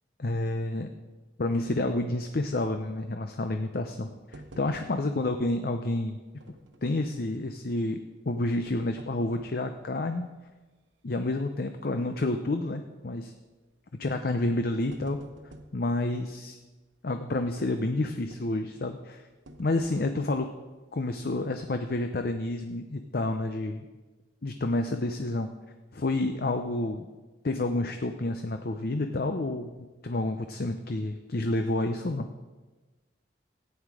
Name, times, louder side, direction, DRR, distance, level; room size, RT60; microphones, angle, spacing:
voice 1, 0.2-0.9 1.4-6.2 6.8-8.0 8.3-10.3 11.0-13.3 14.0-15.2 15.7-16.6 17.0-19.2 19.6-20.5 20.9-23.8 24.4-25.5 25.9-27.1 27.4-32.3, left 2 dB, 55° left, 7 dB, 0.6 m, -29 dB
sound 1, 4.3-5.3 5.6-5.7 6.4-7.1 8.4-9.7 10.2-10.3 11.0-11.2 11.5-11.6 12.8-13.1 14.0-14.1 14.5-15.8 17.6-18.7 19.5-20.4 21.0-21.1 21.4-21.6, right 1 dB, 80° right, 1.1 m, -49 dB
14.5 x 9.6 x 4.8 m, 1.2 s
head